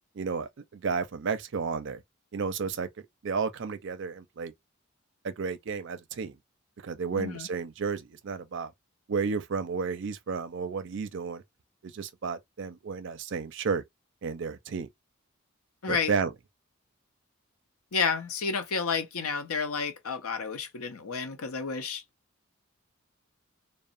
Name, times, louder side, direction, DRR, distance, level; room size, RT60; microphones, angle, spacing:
voice 1, 0.1-2.0 2.3-2.9 3.2-4.5 5.2-6.4 6.8-8.7 9.1-11.4 11.8-13.8 14.2-14.9 15.9-16.3, right 5 dB, 60° right, 0.5 m, -32 dB
voice 2, 7.1-7.5 15.8-16.1 17.9-22.0, left 5 dB, 90° left, 0.6 m, -31 dB
2.9 x 2.0 x 2.5 m
head